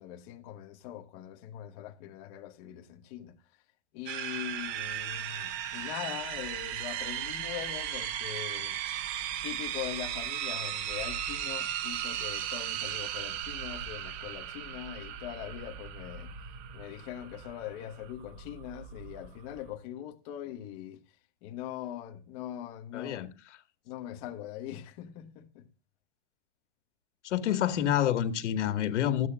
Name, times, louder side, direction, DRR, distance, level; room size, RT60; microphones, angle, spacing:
voice 1, 0.0-3.4 3.9-8.8 9.4-16.3 16.7-21.0 21.4-23.2 23.9-25.7, left 12 dB, 35° left, 1.4 m, -42 dB
sound 1, 4.1-18.1, right 11 dB, 20° right, 0.5 m, -36 dB
sound 2, 4.3-19.7, right 2 dB, 55° right, 6.4 m, -50 dB
voice 2, 22.9-23.3 27.2-29.3, left 10 dB, 90° left, 1.9 m, -28 dB
25.0 x 8.9 x 2.4 m
supercardioid pair, 175°, 34 cm